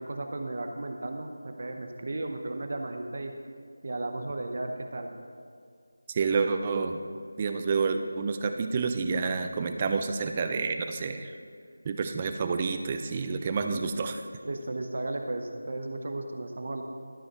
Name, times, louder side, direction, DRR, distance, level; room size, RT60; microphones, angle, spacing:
voice 1, 0.0-3.3 3.8-5.1 14.4-16.8, right 2 dB, 50° right, 4 dB, 0.8 m, -34 dB
voice 2, 6.1-7.0 7.4-11.3 11.8-14.2, right 4 dB, 25° right, 6 dB, 0.5 m, -29 dB
12.5 x 5.0 x 5.4 m, 2.2 s
figure-of-eight pair, 165°, 0 cm